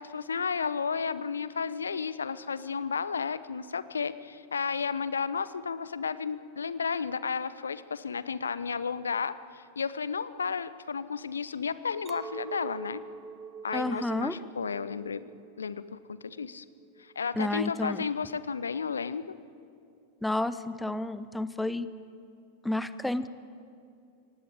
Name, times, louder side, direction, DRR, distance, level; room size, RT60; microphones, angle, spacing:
voice 1, 0.0-13.0 13.6-15.3 15.6-16.6 17.0-19.4, left 6 dB, 70° left, 16 dB, 0.8 m, -33 dB
Chink clink, 12.1-17.4, right 5 dB, 20° right, 1.0 m, -45 dB
voice 2, 13.7-14.4 17.4-18.0 20.2-21.9 22.6-23.3, left 1 dB, 5° left, 14 dB, 0.8 m, -30 dB
25.0 x 18.0 x 8.8 m, 2.5 s
figure-of-eight pair, 90°, 0 cm